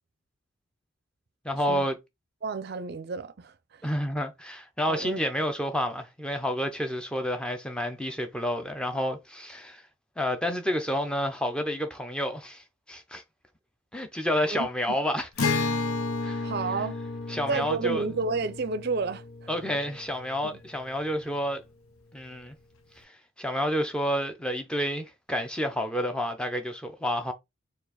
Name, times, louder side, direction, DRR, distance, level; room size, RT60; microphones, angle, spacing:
voice 1, 1.4-2.0 3.8-9.8 10.2-13.2 13.9-15.5 16.2-16.5 17.3-18.1 19.5-21.6 22.1-22.6 23.0-27.3, equal, 5° left, 0.6 m, -30 dB
voice 2, 2.4-3.8 4.9-5.2 14.5-15.0 16.4-17.0 17.5-19.5, right 4 dB, 50° right, 0.5 m, -31 dB
Acoustic guitar, 15.4-20.9, left 3 dB, 90° left, 0.7 m, -32 dB
4.6 x 2.4 x 4.1 m
head